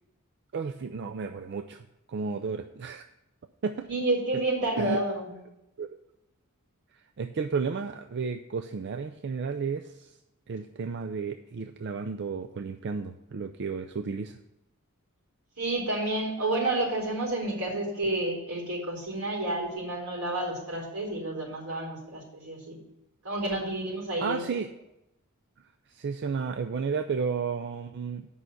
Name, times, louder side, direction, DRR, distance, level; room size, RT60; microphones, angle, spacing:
voice 1, 0.5-3.0 3.6-3.9 4.8-5.0 5.8-5.9 6.9-10.2 10.5-14.4 24.2-24.7 25.9-28.2, right 5 dB, 50° right, 7 dB, 0.4 m, -32 dB
voice 2, 3.9-5.3 15.6-22.8 23.2-24.5, right 2 dB, 80° right, -1 dB, 4.1 m, -30 dB
8.4 x 5.6 x 7.7 m, 0.86 s
head